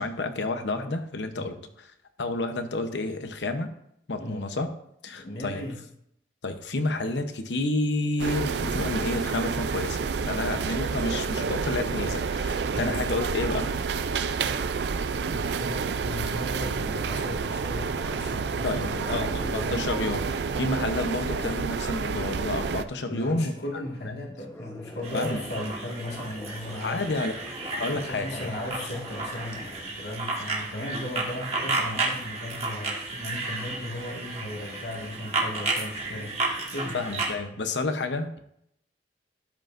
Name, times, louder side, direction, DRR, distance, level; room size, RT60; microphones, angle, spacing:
voice 1, 0.0-1.9 2.2-3.7 4.1-4.7 5.0-5.6 6.4-10.0 10.3-13.7 18.6-23.5 24.0-24.1 25.1-25.4 26.8-27.3 27.7-28.5 36.9-38.4, left 2 dB, 90° left, 8 dB, 0.9 m, -30 dB
voice 2, 4.2-4.5 5.1-5.8 12.7-13.0 14.7-19.8 23.1-27.2 27.9-36.5 36.7-37.0, left 1 dB, 70° left, -1 dB, 1.8 m, -36 dB
sound 1, 8.2-22.8, right 5 dB, 70° right, 0.4 m, -29 dB
sound 2, 13.8-14.2 15.7-15.8 16.5-16.8 17.2-22.3 22.9-24.1 24.4-29.8, equal, 15° left, 1.0 m, -44 dB
sound 3, 25.0-37.3, right 3 dB, 35° right, 1.5 m, -32 dB
12.0 x 7.8 x 2.6 m, 0.74 s
head